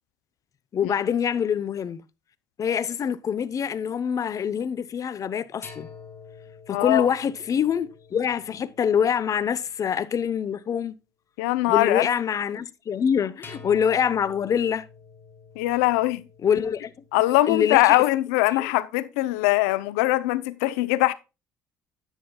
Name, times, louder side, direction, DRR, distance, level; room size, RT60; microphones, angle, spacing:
voice 1, 0.7-2.0 2.6-5.9 6.7-10.9 11.7-14.9 16.4-16.9 17.5-18.0 18.5-18.7, left 8 dB, 45° left, 0.9 m, -25 dB
sound 1, 5.6-9.9 13.4-17.3, left 5 dB, 30° left, 3.6 m, -48 dB
voice 2, 6.7-7.1 11.4-12.1 15.6-16.2 17.1-21.1, left 18 dB, 85° left, 0.7 m, -22 dB
10.0 x 9.1 x 2.3 m
hypercardioid pair, 65°, 8 cm